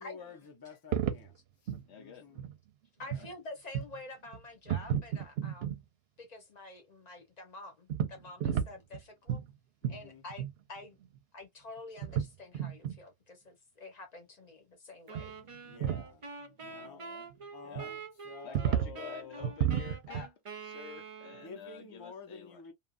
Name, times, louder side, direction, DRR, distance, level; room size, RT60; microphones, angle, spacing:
voice 1, 0.0-1.4 1.9-2.4 9.8-10.2 15.6-16.2 16.6-17.0 17.5-19.5 21.4-22.7, left 5 dB, 25° left, 0.7 m, -49 dB
sound 1, 0.9-1.3 1.7-1.8 2.4-2.5 3.0-3.3 3.7-4.0 4.3-4.4 4.7-5.8 7.9-9.0 9.3-9.5 9.8-10.0 10.3-10.5 10.8-10.9 11.0-11.1 12.0-12.3 12.5-13.0 15.1-15.3 15.6-16.1 17.8-17.9 18.6-18.9 19.4-20.3, right 9 dB, 70° right, 0.8 m, -32 dB
voice 2, 1.9-2.3 3.0-3.3 16.7-17.3 17.6-17.9 18.4-20.3 20.6-22.6, left 6 dB, 75° left, 1.0 m, -49 dB
voice 3, 3.0-5.9 6.2-9.4 9.9-11.0 11.3-15.4, left 2 dB, 40° left, 1.0 m, -48 dB
sound 2, 15.1-21.7, right 4 dB, 35° right, 0.6 m, -46 dB
2.9 x 2.4 x 2.4 m
omnidirectional pair, 1.1 m